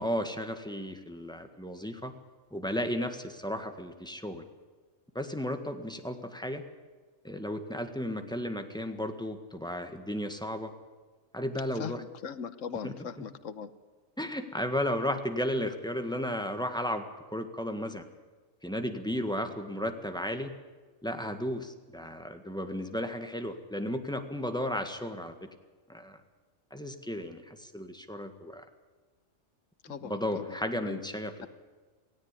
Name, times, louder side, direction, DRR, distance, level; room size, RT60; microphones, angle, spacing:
voice 1, 0.0-2.1 2.5-4.4 5.1-6.6 7.2-10.7 11.3-12.0 12.8-12.9 14.2-18.0 18.6-20.5 21.0-25.3 25.9-26.2 26.7-28.6 29.9-31.5, equal, 5° left, 6 dB, 1.6 m, -34 dB
voice 2, 11.8-13.7 29.8-30.6 30.8-31.0, left 7 dB, 75° left, 13 dB, 1.3 m, -39 dB
17.5 x 16.5 x 9.8 m, 1.4 s
omnidirectional pair, 1.3 m